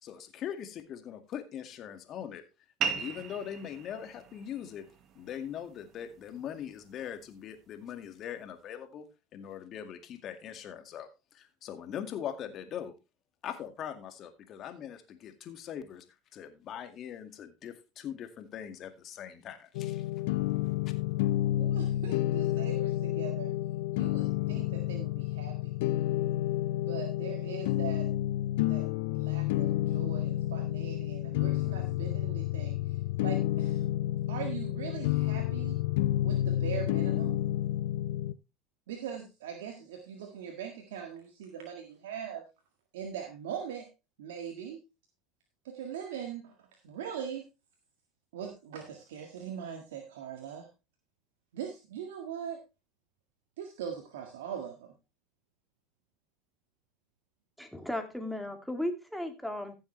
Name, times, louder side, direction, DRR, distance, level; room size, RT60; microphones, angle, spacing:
voice 1, 0.0-2.4 2.9-4.9 5.2-9.1 9.3-11.1 11.3-12.9 13.4-16.0 16.3-20.0, left 9 dB, 50° left, 7 dB, 2.0 m, -41 dB
sound 1, 2.8-7.8, right 7 dB, 50° right, 1.4 m, -40 dB
sound 2, 19.7-38.3, left 14 dB, 75° left, 0.5 m, -30 dB
voice 2, 21.6-23.5 23.9-25.7 26.9-28.1 28.7-28.9 29.1-32.8 33.2-33.8 34.3-35.8 36.2-37.4 38.9-42.4 42.9-43.8 44.2-44.8 45.6-46.5 46.8-47.4 48.3-50.7 51.5-52.6 53.6-54.9, right 8 dB, 85° right, 3 dB, 1.8 m, -41 dB
voice 3, 57.6-59.7, left 1 dB, ahead, 5 dB, 2.5 m, -35 dB
15.0 x 7.2 x 3.3 m, 0.27 s
hypercardioid pair, 90°, 0 cm